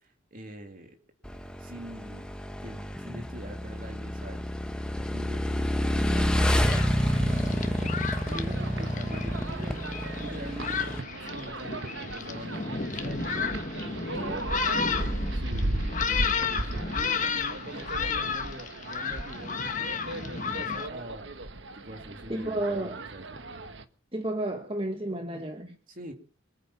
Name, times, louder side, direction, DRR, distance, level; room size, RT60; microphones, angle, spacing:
voice 1, 0.0-0.9 1.6-2.2 2.6-4.4 5.0-7.9 8.2-9.8 10.2-11.0 11.3-13.4 13.8-14.5 14.9-21.4 21.7-23.5 25.9-26.1, right 1 dB, 45° right, 4 dB, 3.0 m, -44 dB
Motorcycle / Engine, 1.2-11.0, equal, 5° left, 1.0 m, -29 dB
Thunderstorm, 6.1-20.9, left 6 dB, 40° left, 1.3 m, -33 dB
sound 1, 6.6-23.8, right 2 dB, 65° right, 1.3 m, -36 dB
voice 2, 22.3-23.0 24.1-25.8, right 1 dB, 25° right, 6 dB, 1.4 m, -31 dB
24.5 x 9.6 x 5.7 m, 0.39 s
head